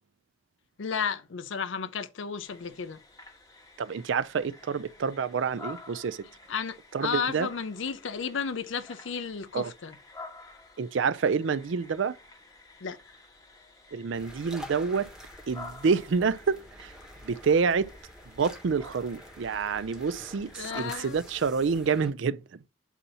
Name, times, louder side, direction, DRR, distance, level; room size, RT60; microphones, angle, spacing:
voice 1, 0.8-3.0 6.5-9.9 12.8-13.0 20.6-21.2, left 6 dB, 75° left, 0.5 m, -33 dB
sound 1, 2.5-21.0, left 3 dB, 20° left, 1.3 m, -50 dB
voice 2, 3.8-6.3 6.9-7.5 9.5-9.7 10.8-12.2 13.9-15.1 15.5-16.9 17.2-17.9 18.3-22.6, right 5 dB, 70° right, 0.4 m, -28 dB
sound 2, 14.1-22.1, equal, 5° right, 1.2 m, -48 dB
8.2 x 2.8 x 5.5 m
head